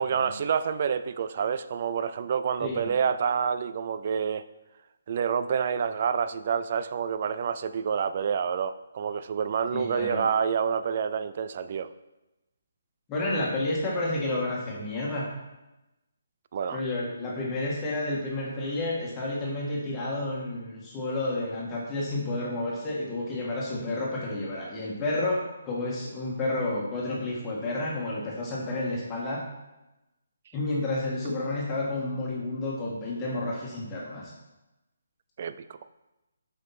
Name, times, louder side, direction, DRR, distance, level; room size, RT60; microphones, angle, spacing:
voice 1, 0.0-4.5 5.1-11.9 16.5-16.8 35.4-35.8, right 7 dB, 45° right, 12 dB, 0.4 m, -28 dB
voice 2, 2.6-2.9 9.7-10.2 13.1-15.3 16.7-29.4 30.5-34.3, left 2 dB, 20° left, -5 dB, 1.8 m, -30 dB
7.3 x 5.3 x 4.2 m, 1.0 s
figure-of-eight pair, 145°, 0 cm